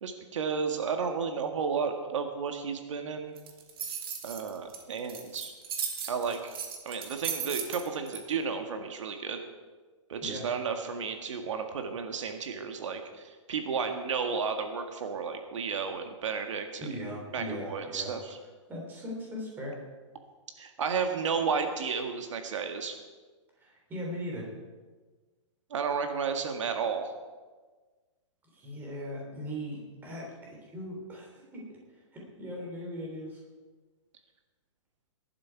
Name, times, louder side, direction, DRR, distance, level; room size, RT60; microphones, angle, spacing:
voice 1, 0.0-3.3 4.2-5.5 6.1-6.6 6.9-9.4 10.1-16.9 17.3-18.4 20.6-23.0 25.7-27.1, right 5 dB, 70° right, 5 dB, 1.7 m, -32 dB
sound 1, 3.4-8.2, right 7 dB, 50° right, 2.2 m, -36 dB
voice 2, 16.8-18.1 18.7-19.8 23.6-24.5 28.5-31.8 32.1-33.4, equal, 10° right, -2 dB, 3.4 m, -39 dB
18.5 x 11.5 x 4.6 m, 1.4 s
hypercardioid pair, 165°, 16 cm